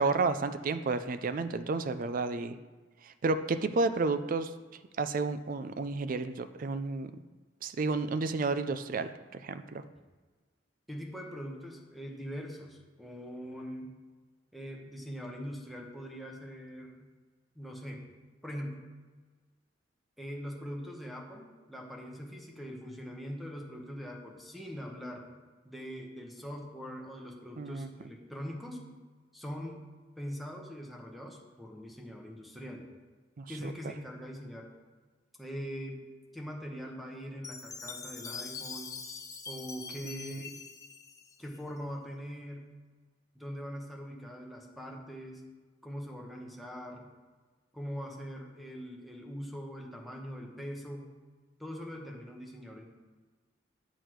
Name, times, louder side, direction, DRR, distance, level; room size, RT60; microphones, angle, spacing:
voice 1, 0.0-2.6 3.0-4.5 5.0-7.1 7.6-9.8 27.6-27.9 33.4-33.7 40.0-40.4, right 3 dB, 45° right, 11 dB, 0.4 m, -31 dB
voice 2, 10.9-14.0 14.5-17.1 17.5-18.1 18.4-18.8 20.2-25.3 25.6-28.8 29.3-29.9 30.2-32.9 33.5-34.7 35.4-36.0 36.3-38.9 39.5-40.5 41.4-42.7 43.3-45.4 45.8-47.1 47.7-51.1 51.6-52.9, equal, ahead, 0 dB, 1.0 m, -42 dB
Chime, 37.4-41.8, left 5 dB, 20° left, 0.6 m, -43 dB
8.3 x 6.3 x 4.6 m, 1.4 s
head